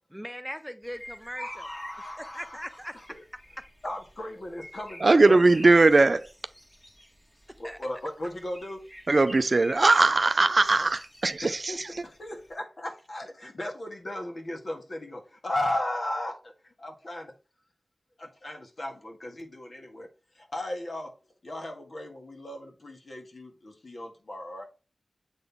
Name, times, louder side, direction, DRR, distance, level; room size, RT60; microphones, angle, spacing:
voice 1, 0.1-1.7 2.2-3.0 3.6-3.7 7.5-7.8 13.4-13.5, equal, ahead, 0.5 m, -40 dB
sound 1, 0.8-12.5, equal, 15° left, 1.8 m, -48 dB
voice 2, 1.4-2.6 3.8-5.7 7.6-8.9 11.4-16.5 16.8-17.3 18.2-21.1 21.4-24.7, left 1 dB, 55° left, 1.8 m, -36 dB
voice 3, 5.0-6.3 9.1-12.0, right 3 dB, 50° right, 0.4 m, -20 dB
7.9 x 3.9 x 3.5 m
wide cardioid pair, 65°, 0 cm